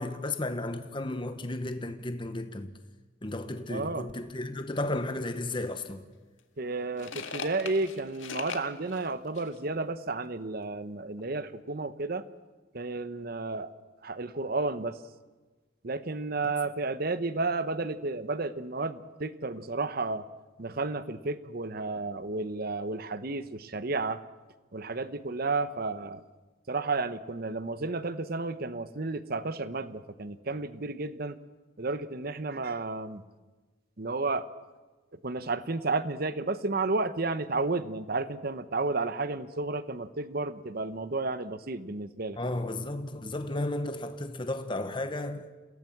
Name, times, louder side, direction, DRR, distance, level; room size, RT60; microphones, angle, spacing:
voice 1, 0.0-2.8 3.2-6.0 42.4-45.5, left 2 dB, 25° left, 1.1 m, -33 dB
voice 2, 3.7-4.1 6.6-12.2 12.7-13.7 14.0-15.0 15.8-20.3 20.6-24.2 24.7-26.2 26.7-31.4 31.8-33.2 34.0-34.5 35.1-42.4, right 3 dB, 50° right, 0.9 m, -32 dB
sound 1, 5.6-5.7 6.4-9.6, left 5 dB, 80° left, 1.9 m, -40 dB
27.5 x 17.0 x 7.3 m
head